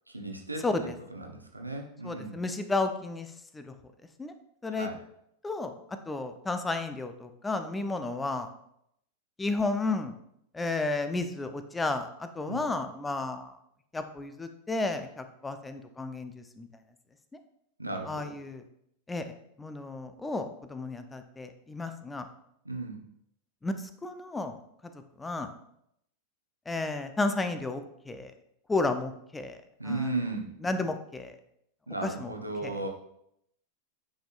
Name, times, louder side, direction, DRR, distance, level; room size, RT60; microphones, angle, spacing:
voice 1, 0.1-2.4 4.7-5.0 12.4-12.7 17.8-18.4 22.6-23.0 29.8-30.5 31.9-32.9, right 2 dB, 85° right, 2 dB, 1.0 m, -35 dB
voice 2, 0.6-0.9 2.0-3.7 4.2-4.3 4.6-4.9 5.4-5.7 6.1-8.5 9.4-10.1 10.5-13.5 13.9-16.7 18.1-18.6 19.1-22.3 23.6-23.7 24.0-24.6 25.2-25.5 26.7-28.3 28.7-29.6 29.9-30.1 30.6-31.3 32.0-32.3 32.6-32.9, left 3 dB, 10° left, 8 dB, 0.7 m, -32 dB
8.8 x 5.4 x 2.5 m, 0.75 s
figure-of-eight pair, 90°, 0 cm